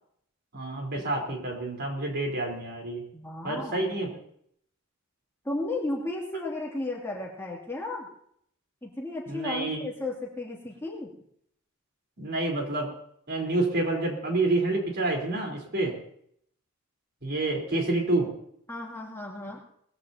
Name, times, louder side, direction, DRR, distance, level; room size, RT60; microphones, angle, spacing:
voice 1, 0.5-3.0 3.4-4.2 9.3-9.8 12.2-12.9 13.3-16.0 17.2-18.3, right 2 dB, 50° right, 0 dB, 4.1 m, -28 dB
voice 2, 3.1-3.9 5.4-8.1 8.8-11.1 18.7-19.6, left 2 dB, 10° left, -2 dB, 2.8 m, -34 dB
21.5 x 15.5 x 2.9 m, 0.68 s
head